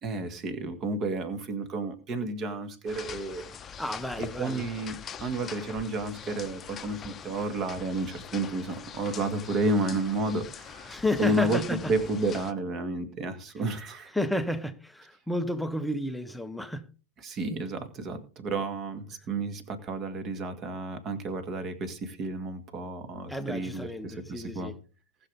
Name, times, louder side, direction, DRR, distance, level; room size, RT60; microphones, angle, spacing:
voice 1, 0.0-3.5 4.2-11.6 11.9-14.1 17.2-24.7, right 2 dB, 30° right, 2.1 m, -31 dB
sound 1, 2.9-12.5, left 7 dB, 25° left, 0.9 m, -43 dB
voice 2, 3.8-4.7 10.9-11.9 14.1-16.9 23.3-24.8, left 1 dB, ahead, 0.9 m, -31 dB
19.5 x 6.7 x 3.7 m
figure-of-eight pair, 90°, 0 cm